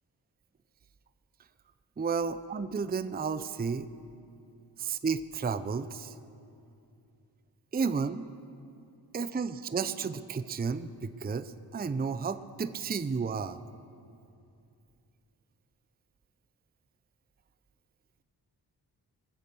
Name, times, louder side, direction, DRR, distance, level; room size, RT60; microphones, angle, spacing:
voice 1, 2.0-3.9 4.8-6.1 7.7-8.3 9.1-13.6, right 5 dB, 20° right, 12 dB, 0.5 m, -32 dB
21.0 x 8.1 x 6.9 m, 2.5 s
cardioid pair, 45°, 45 cm